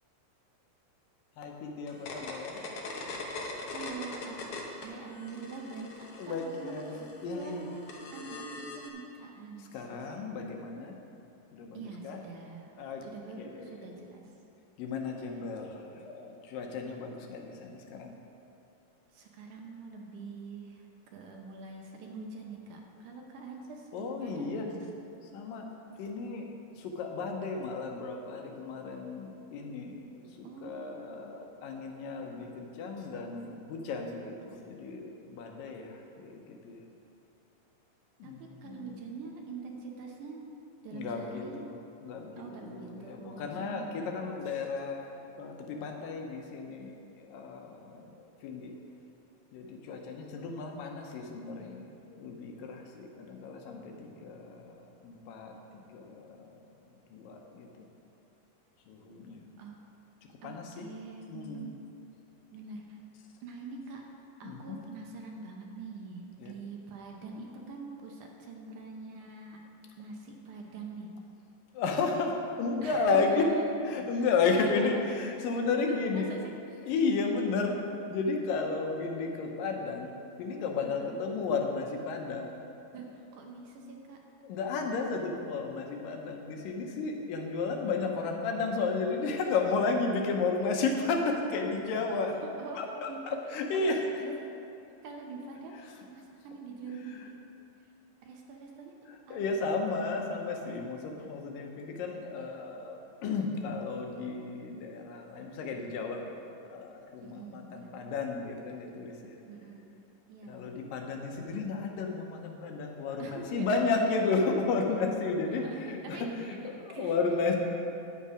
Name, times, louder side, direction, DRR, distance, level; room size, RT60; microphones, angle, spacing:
voice 1, 1.4-2.6 6.2-7.7 9.6-10.9 11.5-12.2 12.7-13.0 13.4-14.0 14.8-18.2 23.9-24.7 25.3-25.7 26.0-26.5 26.8-36.8 38.2-39.0 40.9-48.8 49.5-55.6 55.9-56.8 57.1-57.9 58.9-59.4 60.4-60.9 61.3-61.7 64.4-64.8 66.4-66.5 71.7-73.6 73.8-76.3 76.8-77.8 78.1-80.1 80.4-82.6 84.4-92.4 92.7-94.3 95.7-96.1 96.9-97.3 99.1-106.4 106.7-109.4 110.4-117.6, left 4 dB, 80° left, 2 dB, 2.6 m, -33 dB
sound 1, 1.9-4.9 5.2-8.9, left 3 dB, 65° left, 1.5 m, -41 dB
voice 2, 3.7-4.5 4.8-7.0 7.3-8.5 8.7-10.1 11.7-12.7 13.0-14.3 19.1-20.9 21.1-25.0 30.4-31.0 38.2-40.5 40.8-41.7 42.4-44.3 59.6-59.8 60.4-61.7 62.5-63.0 63.4-64.0 64.4-69.6 70.0-71.1 72.8-73.6 74.2-75.0 75.9-76.5 80.8-81.2 82.9-84.2 92.6-93.4 93.7-93.9 94.2-94.5 95.0-95.8 96.1-97.4 98.2-99.0 99.3-99.4 107.2-108.1 109.5-109.9 110.3-110.6 113.2-113.8 115.6-116.6 116.9-117.1, right 4 dB, 70° right, 1 dB, 2.2 m, -44 dB
10.5 x 8.4 x 4.9 m, 2.7 s
omnidirectional pair, 4.0 m